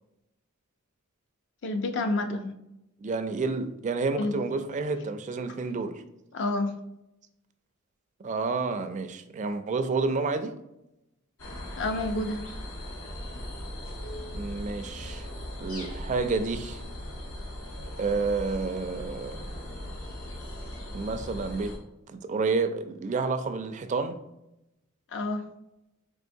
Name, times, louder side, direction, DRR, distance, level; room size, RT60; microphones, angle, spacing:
voice 1, 1.6-2.6 4.2-4.4 6.3-6.7 11.8-12.4 25.1-25.4, left 2 dB, 60° left, 7 dB, 0.5 m, -29 dB
voice 2, 3.0-6.0 8.2-10.6 14.3-15.3 15.6-16.8 18.0-19.5 20.9-21.7 22.1-24.2, right 4 dB, 35° right, 9 dB, 0.3 m, -29 dB
sound 1, 11.4-21.8, left 1 dB, 80° left, 1.1 m, -39 dB
4.5 x 3.3 x 2.6 m, 0.88 s
head